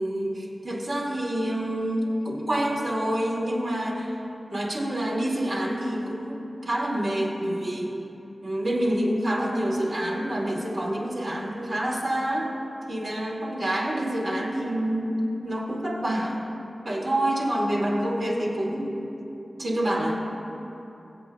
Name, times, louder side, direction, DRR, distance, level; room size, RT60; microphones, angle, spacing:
voice 1, 0.0-4.1 4.5-7.9 8.4-12.5 12.9-15.2 15.4-16.4 16.8-18.9 19.6-20.1, right 1 dB, 75° right, -5 dB, 2.4 m, -27 dB
21.5 x 8.1 x 2.4 m, 2.9 s
wide cardioid pair, 65°, 0 cm